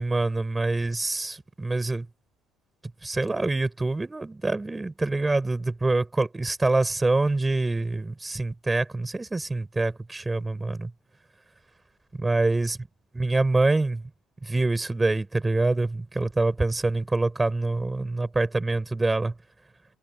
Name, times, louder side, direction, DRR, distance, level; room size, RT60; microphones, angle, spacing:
voice 1, 0.0-2.1 3.0-10.9 12.2-12.8 13.1-14.0 14.4-19.3, right 2 dB, 15° right, 5.5 m, -25 dB
cardioid pair, 130°, 0 cm